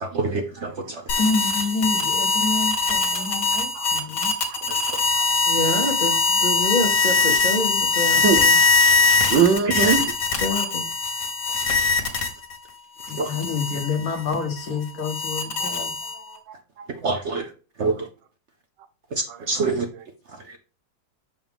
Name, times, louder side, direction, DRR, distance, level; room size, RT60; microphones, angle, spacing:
voice 1, 0.0-1.0 4.7-5.0 9.6-9.9 13.2-13.3 17.0-17.5 17.8-18.1 19.1-19.9 20.5-20.6, right 3 dB, 50° right, 0.9 m, -26 dB
sound 1, 1.1-12.6 13.0-16.4, left 4 dB, 75° left, 2.0 m, -22 dB
voice 2, 1.1-4.3 13.1-15.9, left 4 dB, 60° left, 1.6 m, -28 dB
voice 3, 5.5-6.1 6.4-8.5 10.3-10.8, left 2 dB, 30° left, 0.9 m, -26 dB
voice 4, 9.3-10.0 10.5-10.6 16.5-16.9 19.3-19.4, right 6 dB, 90° right, 1.5 m, -22 dB
7.1 x 4.7 x 3.5 m
omnidirectional pair, 1.9 m